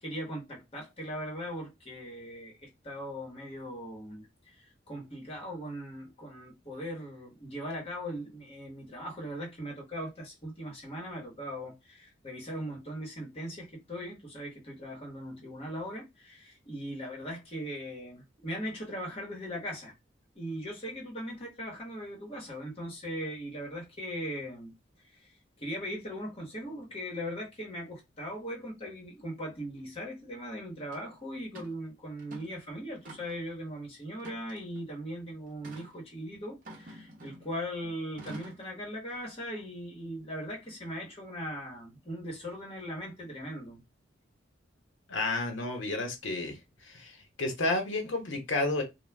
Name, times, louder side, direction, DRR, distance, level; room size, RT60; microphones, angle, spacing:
voice 1, 0.0-19.9 20.3-24.7 25.1-43.8, equal, 30° left, 1.1 m, -39 dB
sound 1, 30.9-31.0 31.5-31.8 32.2-32.6 33.0-33.5 34.2-34.8 35.6-35.9 36.6-37.5 38.2-38.7, right 1 dB, 45° right, 0.7 m, -47 dB
voice 2, 45.1-46.6 46.8-48.8, left 2 dB, 85° left, 0.8 m, -31 dB
2.3 x 2.2 x 3.2 m
head